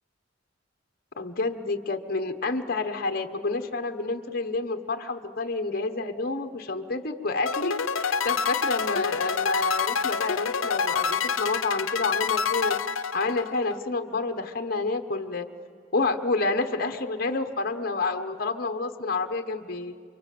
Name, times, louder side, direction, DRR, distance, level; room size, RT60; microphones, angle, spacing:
voice 1, 1.2-12.8 13.1-15.5 15.9-19.9, left 3 dB, 50° left, 6 dB, 1.2 m, -29 dB
sound 1, 7.5-13.8, left 6 dB, 90° left, 0.9 m, -27 dB
29.0 x 25.0 x 7.7 m, 2.3 s
head